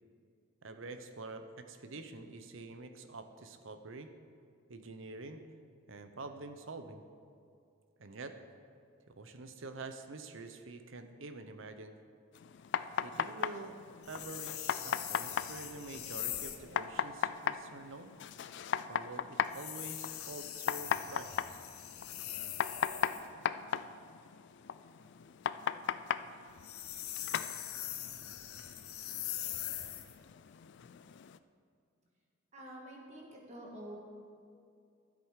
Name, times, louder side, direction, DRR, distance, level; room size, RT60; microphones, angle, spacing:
voice 1, 0.6-4.1 4.7-5.4 5.9-7.0 8.0-8.3 9.1-12.0 13.0-18.1 18.9-21.6, right 3 dB, 65° right, 8 dB, 0.8 m, -47 dB
sound 1, 12.3-31.4, left 7 dB, 55° left, 0.3 m, -39 dB
sound 2, 14.0-16.7 19.4-23.3 26.5-30.2, left 12 dB, 85° left, 0.8 m, -42 dB
voice 2, 32.5-34.0, right 1 dB, 30° right, -2 dB, 1.9 m, -48 dB
12.5 x 7.7 x 4.8 m, 2.5 s
head